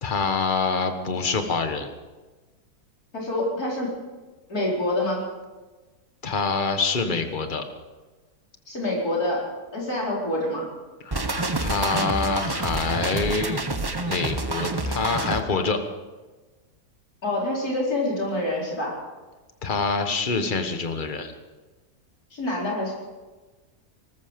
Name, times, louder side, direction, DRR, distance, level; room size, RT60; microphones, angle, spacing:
voice 1, 0.0-1.9 6.2-7.6 11.0-11.2 11.6-13.6 14.1-15.8 19.6-21.3, left 4 dB, 35° left, 7 dB, 1.4 m, -25 dB
voice 2, 3.1-3.9 4.5-5.2 8.7-9.4 9.7-10.6 17.2-18.9 22.3-22.9, left 1 dB, 70° left, -3 dB, 4.9 m, -26 dB
sound 1, 11.1-15.4, right 2 dB, 20° right, 0.8 m, -28 dB
19.5 x 13.5 x 5.2 m, 1.2 s
omnidirectional pair, 1.7 m